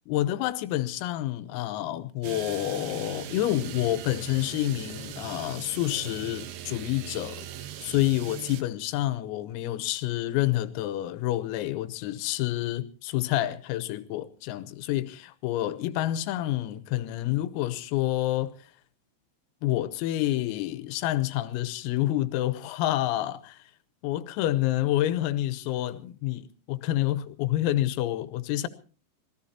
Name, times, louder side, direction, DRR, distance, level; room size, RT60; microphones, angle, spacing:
voice 1, 0.1-7.5 7.8-18.5 19.6-23.6 24.0-28.7, left 14 dB, 90° left, 3.7 m, -28 dB
sound 1, 2.2-8.6, right 10 dB, 70° right, 2.6 m, -40 dB
26.0 x 18.0 x 2.8 m
omnidirectional pair, 5.9 m